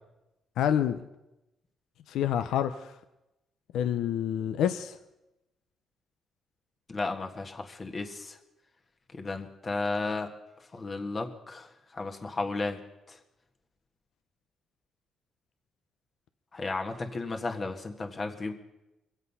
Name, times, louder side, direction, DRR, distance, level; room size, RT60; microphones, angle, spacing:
voice 1, 0.6-1.0 2.1-2.9 3.7-5.0, left 9 dB, 85° left, 10 dB, 0.6 m, -27 dB
voice 2, 6.9-8.4 9.1-10.3 10.7-12.8 13.1-13.2 16.5-18.5, left 3 dB, 35° left, 4 dB, 1.6 m, -34 dB
23.5 x 8.1 x 5.6 m, 0.94 s
cardioid pair, 90°, 0 cm